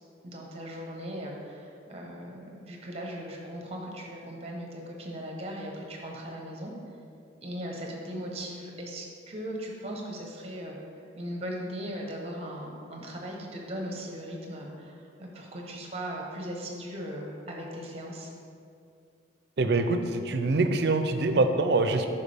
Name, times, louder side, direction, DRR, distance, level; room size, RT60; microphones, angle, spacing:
voice 1, 0.2-6.7 7.4-10.7 11.2-14.9 15.2-18.3, equal, 30° right, 0 dB, 1.0 m, -38 dB
voice 2, 19.6-22.1, right 3 dB, 55° right, 7 dB, 0.5 m, -24 dB
8.3 x 5.6 x 3.4 m, 2.5 s
head